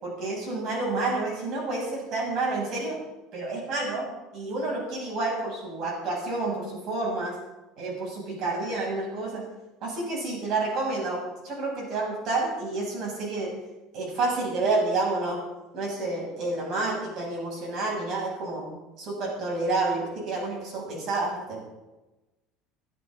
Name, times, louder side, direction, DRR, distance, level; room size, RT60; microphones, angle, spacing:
voice 1, 0.0-3.0 3.3-4.1 4.3-7.4 7.8-9.4 9.8-13.5 13.9-15.4 15.7-21.6, right 3 dB, 45° right, -1 dB, 7.1 m, -29 dB
24.0 x 12.0 x 3.9 m, 1.1 s
cardioid pair, 165°, 0 cm